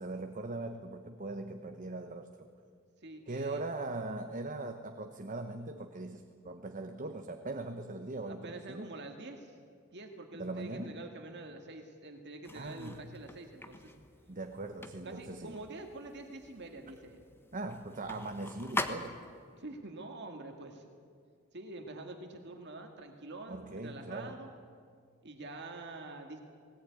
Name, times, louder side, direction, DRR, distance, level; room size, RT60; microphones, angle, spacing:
voice 1, 0.0-2.5 3.3-8.9 10.3-11.0 12.5-13.1 14.3-15.6 17.5-19.2 23.5-24.4, right 2 dB, 40° right, 6 dB, 1.1 m, -40 dB
voice 2, 3.0-3.6 8.3-9.5 9.9-13.9 15.0-17.2 19.6-20.8 21.5-24.5 25.2-26.4, right 2 dB, 55° right, 4 dB, 2.0 m, -46 dB
sound 1, 12.4-19.5, left 2 dB, 10° left, 1.2 m, -43 dB
20.0 x 18.5 x 9.5 m, 2.1 s
head